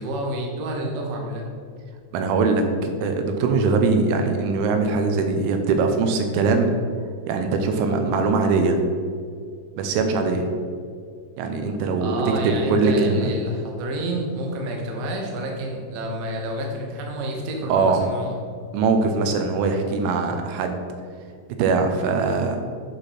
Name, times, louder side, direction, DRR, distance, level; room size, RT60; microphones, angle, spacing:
voice 1, 0.0-1.5 12.0-18.4, right 1 dB, 70° right, 0 dB, 2.1 m, -29 dB
voice 2, 2.1-6.7 7.3-8.8 9.8-10.5 11.4-13.3 17.7-18.1 18.7-20.8 21.6-22.6, right 4 dB, 90° right, 5 dB, 3.2 m, -21 dB
8.8 x 4.9 x 4.4 m, 2.1 s
omnidirectional pair, 5.5 m